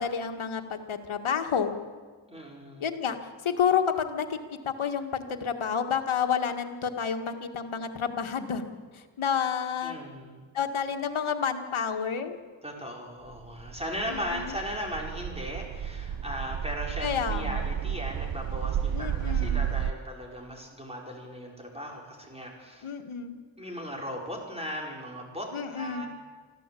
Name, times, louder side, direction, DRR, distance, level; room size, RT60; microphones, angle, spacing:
voice 1, 0.0-1.7 2.8-3.2 3.4-4.4 4.6-8.6 8.9-10.0 10.5-12.3 14.1-14.5 17.0-17.6 18.9-19.6 22.8-23.3 25.5-26.0, left 7 dB, 80° left, 5 dB, 1.9 m, -29 dB
voice 2, 2.3-2.9 9.8-10.4 12.6-22.9 23.6-26.1, equal, 10° right, 0 dB, 4.9 m, -37 dB
sound 1, 13.3-19.9, right 9 dB, 50° right, 0.6 m, -32 dB
25.0 x 15.0 x 8.4 m, 1.5 s
wide cardioid pair, 135°, 48 cm